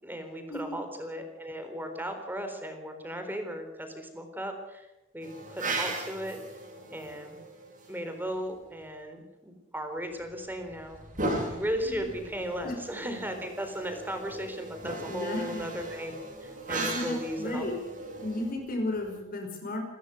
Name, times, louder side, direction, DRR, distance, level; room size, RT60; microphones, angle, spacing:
voice 1, 0.0-4.9 5.1-6.4 6.9-7.4 7.9-11.0 11.4-16.1 16.4-17.7, equal, 10° right, 6 dB, 4.1 m, -36 dB
sound 1, 5.2-8.4 10.2-19.2, right 2 dB, 45° right, 7.5 m, -38 dB
voice 2, 15.1-15.6 16.7-17.8 18.1-19.8, left 1 dB, 50° left, 3 dB, 5.2 m, -34 dB
28.5 x 14.5 x 6.5 m, 0.97 s
head